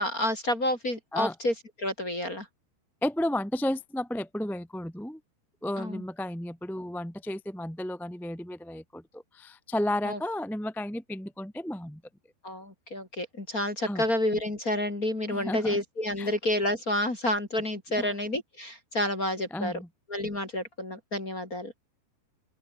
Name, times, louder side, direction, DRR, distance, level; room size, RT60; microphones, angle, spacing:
voice 1, 0.0-2.5 5.8-6.0 10.0-10.2 12.4-19.7 20.1-21.7, left 1 dB, 20° left, 3.0 m, -29 dB
voice 2, 3.0-5.2 5.6-12.0 13.9-14.1 15.3-15.8 16.2-16.3 18.0-18.1 19.5-19.9, left 1 dB, ahead, 2.0 m, -33 dB
open air
omnidirectional pair, 5.1 m